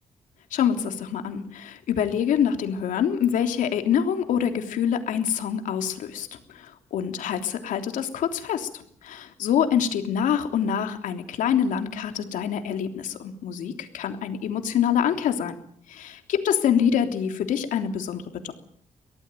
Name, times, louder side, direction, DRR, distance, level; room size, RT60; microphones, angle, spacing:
voice 1, 0.5-6.3 6.5-15.5 15.9-18.5, left 8 dB, 85° left, 6 dB, 3.4 m, -25 dB
24.0 x 17.5 x 9.2 m, 0.65 s
cardioid pair, 145°, 13 cm